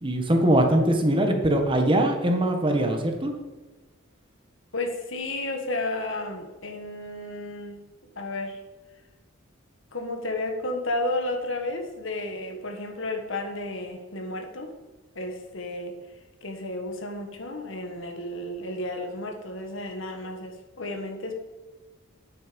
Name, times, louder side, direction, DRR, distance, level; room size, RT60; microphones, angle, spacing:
voice 1, 0.0-3.3, right 1 dB, 25° right, 4 dB, 1.3 m, -22 dB
voice 2, 4.7-7.7 8.1-8.6 9.9-14.7 15.1-16.0 16.4-21.3, left 2 dB, 65° left, 4 dB, 1.7 m, -32 dB
10.5 x 8.8 x 5.2 m, 1.2 s
head